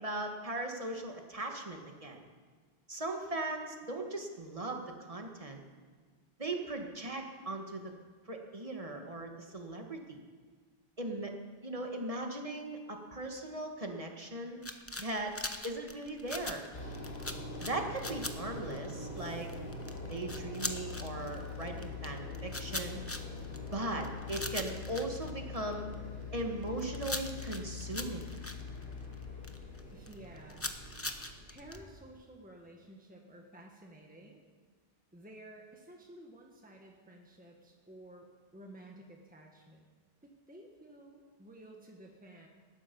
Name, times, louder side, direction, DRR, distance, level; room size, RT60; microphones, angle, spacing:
voice 1, 0.0-2.2 2.9-5.6 6.4-7.9 8.3-10.2 11.0-11.3 11.6-14.6 15.0-15.4 15.6-16.6 17.6-19.5 20.1-23.0 23.7-25.8 26.3-28.3, right 2 dB, 35° right, 3 dB, 1.8 m, -38 dB
sound 1, 14.6-25.9 26.4-29.8 30.1-31.8, left 2 dB, 15° left, 0.9 m, -41 dB
sound 2, 16.7-31.8, left 3 dB, 80° left, 3.4 m, -43 dB
voice 2, 29.9-30.7 31.5-34.4 35.1-38.3 38.5-39.9 40.2-42.5, right 1 dB, 10° right, 0 dB, 1.6 m, -53 dB
19.0 x 14.0 x 5.4 m, 1.5 s
omnidirectional pair, 1.0 m